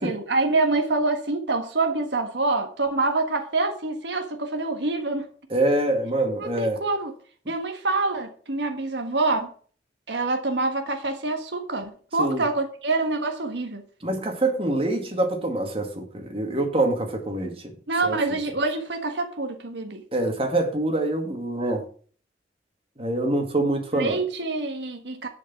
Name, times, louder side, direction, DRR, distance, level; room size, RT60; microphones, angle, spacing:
voice 1, 0.0-5.2 6.4-7.1 7.5-9.5 10.1-13.8 17.9-20.0 23.9-25.3, right 3 dB, 75° right, 1.5 m, -26 dB
voice 2, 5.5-6.8 12.2-12.4 14.0-17.7 18.0-18.2 20.1-21.9 23.0-24.2, right 2 dB, 30° right, 2.1 m, -25 dB
11.0 x 5.2 x 7.1 m
head